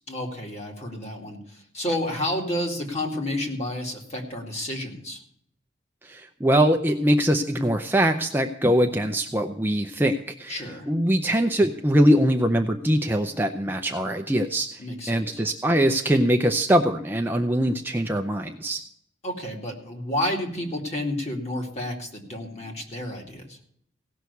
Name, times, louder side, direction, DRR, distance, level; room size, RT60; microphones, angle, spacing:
voice 1, 0.1-5.2 10.5-10.9 14.8-15.4 19.2-23.6, left 1 dB, 35° left, 1 dB, 2.4 m, -30 dB
voice 2, 6.0-10.6 10.9-14.8 15.1-18.8, equal, 10° right, 4 dB, 0.6 m, -22 dB
17.0 x 6.2 x 8.2 m, 0.70 s
head